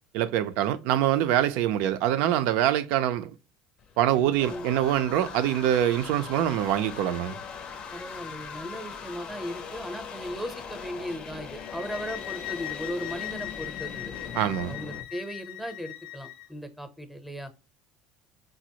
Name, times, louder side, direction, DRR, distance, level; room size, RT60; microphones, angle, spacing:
voice 1, 0.1-3.3 4.0-7.4 14.4-14.8, right 11 dB, 70° right, 0.5 m, -24 dB
sound 1, 3.8-15.0, left 6 dB, 40° left, 0.5 m, -40 dB
voice 2, 7.9-14.1 14.7-17.5, equal, 5° right, 0.7 m, -37 dB
sound 2, 11.6-16.5, left 16 dB, 80° left, 0.7 m, -39 dB
5.0 x 2.0 x 2.8 m
supercardioid pair, 110°, 2 cm